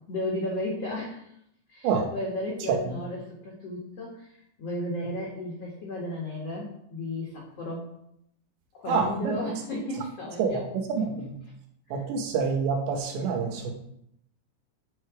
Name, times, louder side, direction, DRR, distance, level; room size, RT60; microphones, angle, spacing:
voice 1, 0.1-1.3 1.7-7.9 8.7-10.6 11.9-12.0, left 1 dB, 75° left, -3 dB, 1.4 m, -34 dB
voice 2, 8.9-9.4 10.4-11.4 11.9-13.7, right 5 dB, 75° right, 4 dB, 3.2 m, -27 dB
7.6 x 6.5 x 4.8 m, 0.75 s
omnidirectional pair, 5.3 m